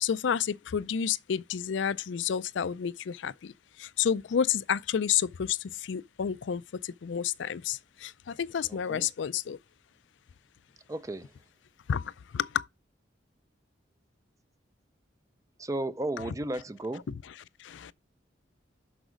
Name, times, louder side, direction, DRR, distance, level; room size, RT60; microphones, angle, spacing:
voice 1, 0.0-9.6 11.9-12.7 17.1-17.2 17.6-17.9, left 8 dB, 75° left, 0.4 m, -30 dB
voice 2, 8.7-9.1 10.9-11.3 15.6-17.0, right 1 dB, 15° right, 0.4 m, -34 dB
6.2 x 6.0 x 5.0 m
head